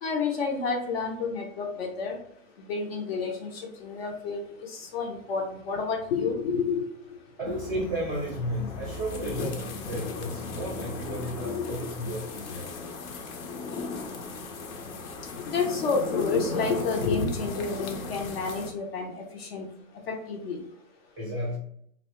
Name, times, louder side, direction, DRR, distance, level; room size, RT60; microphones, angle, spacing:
voice 1, 0.0-2.2 2.7-6.9 11.4-12.2 15.5-19.6 20.1-20.6, left 4 dB, 45° left, 2 dB, 0.5 m, -30 dB
sound 1, 7.4-18.7, left 3 dB, 80° left, 0.7 m, -36 dB
voice 2, 7.4-12.7 21.2-21.6, equal, 10° right, -7 dB, 0.5 m, -33 dB
2.9 x 2.0 x 2.9 m, 0.68 s
hypercardioid pair, 155°, 41 cm